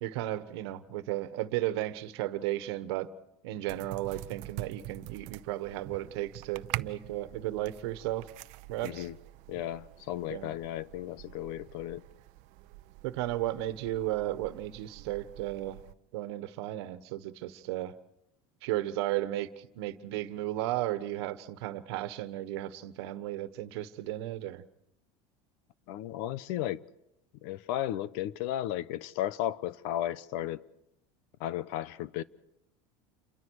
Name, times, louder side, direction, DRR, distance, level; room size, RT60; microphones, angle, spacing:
voice 1, 0.0-3.1 3.4-8.3 8.7-9.1 10.3-10.5 13.0-15.8 16.1-17.9 18.6-24.6, right 15 dB, 80° right, 1.4 m, -34 dB
sound 1, 3.7-15.9, right 18 dB, 65° right, 0.7 m, -45 dB
voice 2, 8.8-9.1 9.5-12.0 25.9-26.8 27.4-30.6 31.4-32.2, left 13 dB, 70° left, 0.9 m, -34 dB
29.0 x 23.5 x 4.8 m
supercardioid pair, 125°, 13 cm